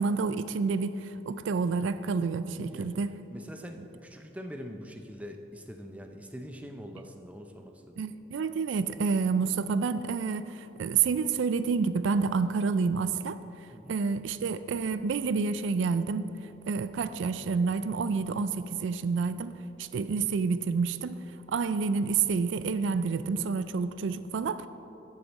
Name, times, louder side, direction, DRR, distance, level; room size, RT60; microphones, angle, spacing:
voice 1, 0.0-3.2 8.0-13.4 13.9-16.3 16.7-21.2 21.5-24.7, right 5 dB, 80° right, 13 dB, 0.4 m, -29 dB
voice 2, 2.5-3.0 3.3-8.0 13.7-14.0, equal, 5° right, 4 dB, 0.5 m, -43 dB
14.0 x 6.6 x 4.1 m, 2.8 s
head